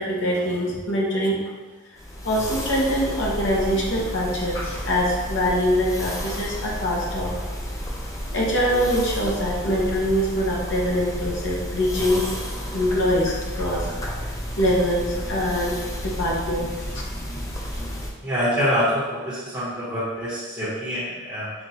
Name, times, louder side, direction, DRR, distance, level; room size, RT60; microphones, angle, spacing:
voice 1, 0.0-1.4 2.2-7.3 8.3-12.3 12.7-13.9 14.6-15.8 16.0-17.0, equal, 55° left, -4 dB, 0.9 m, -23 dB
sound 1, 2.0-18.1, equal, 15° left, 0.3 m, -32 dB
voice 2, 18.2-21.5, equal, 15° right, -13 dB, 1.2 m, -25 dB
5.9 x 2.5 x 2.8 m, 1.3 s
head